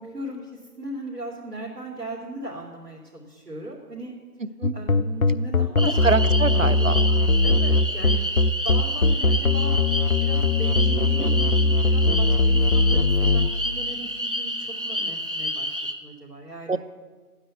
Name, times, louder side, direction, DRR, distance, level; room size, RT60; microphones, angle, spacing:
voice 1, 0.0-4.1 4.7-6.0 6.5-8.2 8.6-9.8 10.2-16.8, right 1 dB, 85° right, -5 dB, 3.4 m, -38 dB
voice 2, 4.4-4.8 5.8-7.1 16.7-16.8, right 3 dB, 55° right, 16 dB, 0.6 m, -25 dB
sound 1, 4.6-13.5, left 2 dB, 60° left, 0.7 m, -20 dB
sound 2, 5.8-15.9, equal, 35° right, 1.0 m, -30 dB
13.0 x 9.9 x 8.0 m, 1.4 s
figure-of-eight pair, 170°, 47 cm